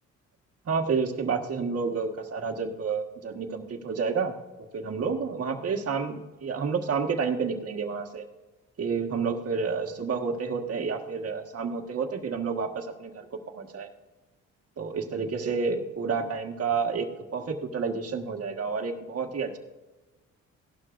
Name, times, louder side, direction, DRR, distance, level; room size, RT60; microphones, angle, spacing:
voice 1, 0.6-4.3 4.7-8.2 8.8-13.3 13.5-13.9 14.8-19.6, right 5 dB, 50° right, 3 dB, 1.6 m, -30 dB
17.0 x 12.0 x 2.6 m, 1.1 s
cardioid pair, 90°, 30 cm